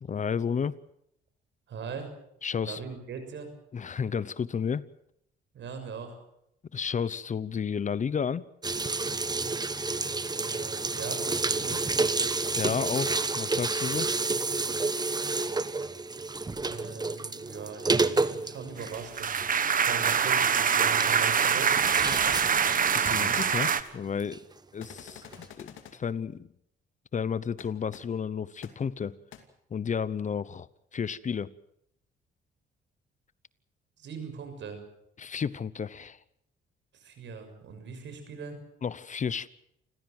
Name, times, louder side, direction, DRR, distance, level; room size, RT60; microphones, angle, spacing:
voice 1, 0.0-0.8 2.4-2.8 3.7-4.8 6.7-8.5 12.6-14.1 22.1-22.2 22.9-24.4 24.7-25.2 25.6-26.5 27.1-29.1 29.7-30.7 30.9-31.5 35.2-36.2 38.8-39.5, left 6 dB, 40° left, 19 dB, 0.8 m, -32 dB
voice 2, 1.7-2.1 2.6-3.5 5.5-6.2 10.3-11.8 16.6-18.0 18.3-21.8 34.0-34.8 36.9-38.6, right 5 dB, 65° right, 7 dB, 6.8 m, -40 dB
sound 1, 8.6-24.4 24.8-25.0 25.3-25.4, right 3 dB, 20° right, 1.2 m, -30 dB
sound 2, 18.8-23.8, right 7 dB, 45° right, 1.4 m, -24 dB
sound 3, 24.8-25.9 27.6-27.7 27.9-28.0 28.6-28.7 29.3-29.4, left 10 dB, 80° left, 2.7 m, -47 dB
28.5 x 16.0 x 7.8 m, 0.76 s
cardioid pair, 90°, 20 cm